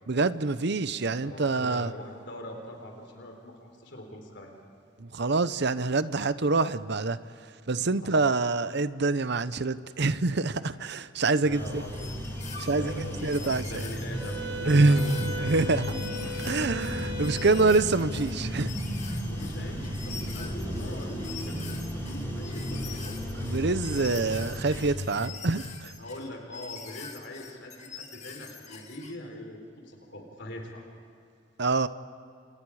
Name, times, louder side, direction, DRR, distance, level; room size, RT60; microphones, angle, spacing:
voice 1, 0.1-1.9 5.0-7.2 7.7-11.8 12.7-13.8 14.7-15.9 16.4-18.7 23.4-25.9 31.6-31.9, right 3 dB, 60° right, 0.9 m, -26 dB
voice 2, 1.2-4.5 8.0-8.2 11.4-12.1 12.5-15.6 19.3-23.2 26.0-30.8, left 1 dB, 65° left, 4.2 m, -42 dB
sound 1, 11.5-24.9, equal, 15° left, 5.8 m, -34 dB
sound 2, 11.8-29.2, left 6 dB, 35° left, 2.4 m, -45 dB
Wind instrument woodwind instrument, 14.1-17.9, equal, 35° right, 4.8 m, -38 dB
30.0 x 28.0 x 4.9 m
head